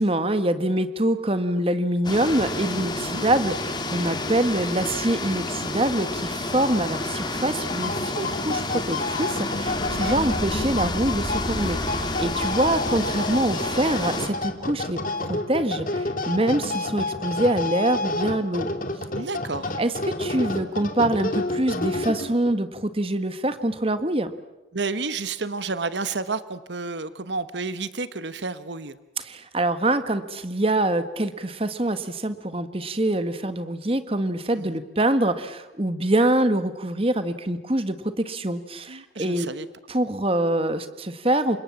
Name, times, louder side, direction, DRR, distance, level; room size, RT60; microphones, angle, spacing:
voice 1, 0.0-15.0 15.3-18.7 19.8-24.3 29.2-39.5 39.9-41.6, right 1 dB, 30° right, 11 dB, 1.5 m, -25 dB
sound 1, 2.0-14.3, left 2 dB, 25° left, 2.9 m, -30 dB
sound 2, 7.6-22.6, left 2 dB, 45° left, 2.4 m, -30 dB
sound 3, 9.6-14.8, equal, ahead, 1.3 m, -35 dB
voice 2, 9.9-10.2 19.1-19.7 24.7-29.0 34.6-34.7 38.9-39.7, right 4 dB, 75° right, 13 dB, 1.2 m, -31 dB
29.5 x 26.0 x 7.3 m, 1.0 s
head